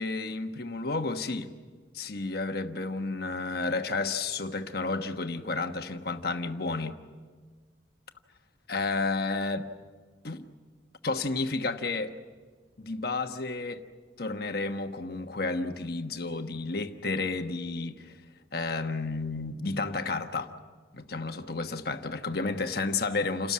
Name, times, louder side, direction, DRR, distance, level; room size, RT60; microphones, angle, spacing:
voice 1, 0.0-1.5 1.9-6.9 8.7-9.7 10.2-10.5 11.0-12.1 12.8-13.9 14.2-18.1 18.5-20.5 20.9-23.5, left 3 dB, 55° left, 1.2 m, -31 dB
29.0 x 13.0 x 9.6 m
head